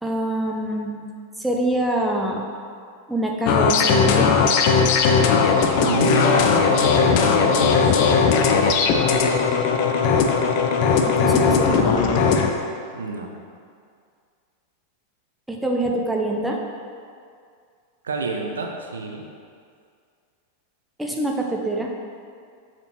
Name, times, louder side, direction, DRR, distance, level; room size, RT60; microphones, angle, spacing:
voice 1, 0.0-1.0 1.4-2.5 3.1-4.3 11.1-12.4 15.5-16.6 21.0-21.9, right 1 dB, 5° right, 0 dB, 0.7 m, -25 dB
sound 1, 3.5-12.5, left 5 dB, 45° left, 0.5 m, -18 dB
voice 2, 5.8-9.1 12.9-13.3 18.0-19.2, right 3 dB, 70° right, 2 dB, 0.6 m, -29 dB
6.8 x 4.4 x 4.3 m, 2.2 s
figure-of-eight pair, 90°, 0 cm